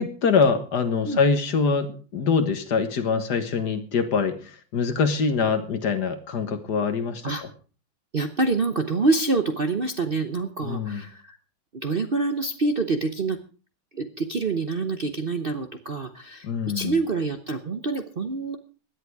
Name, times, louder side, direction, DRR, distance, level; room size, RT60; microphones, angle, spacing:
voice 1, 0.0-7.5 10.6-11.0 16.4-17.0, left 5 dB, 60° left, 9 dB, 1.9 m, -24 dB
voice 2, 8.1-11.4 11.7-13.4 13.9-16.5 16.7-18.6, right 3 dB, 40° right, 7 dB, 0.8 m, -26 dB
17.0 x 11.0 x 4.7 m, 0.37 s
omnidirectional pair, 2.1 m